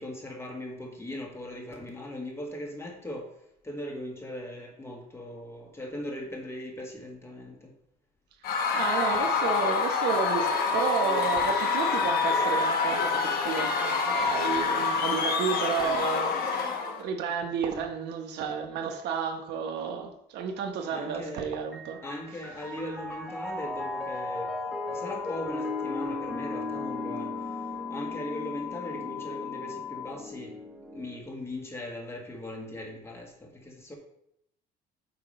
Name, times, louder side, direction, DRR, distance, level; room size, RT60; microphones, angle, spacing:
voice 1, 0.0-3.3 3.6-7.7 20.9-21.6 22.0-24.5 24.9-30.5 30.9-33.9, left 1 dB, 15° left, 1.6 m, -39 dB
Screaming / Cheering / Crowd, 8.4-17.0, left 5 dB, 65° left, 1.2 m, -26 dB
voice 2, 8.7-16.4 17.0-22.0, right 6 dB, 85° right, 1.0 m, -31 dB
Piano, 21.6-31.2, left 1 dB, ahead, 1.1 m, -37 dB
sound 1, 23.5-30.1, left 11 dB, 60° right, 2.1 m, -39 dB
8.2 x 2.9 x 5.5 m
cardioid pair, 110°, 17 cm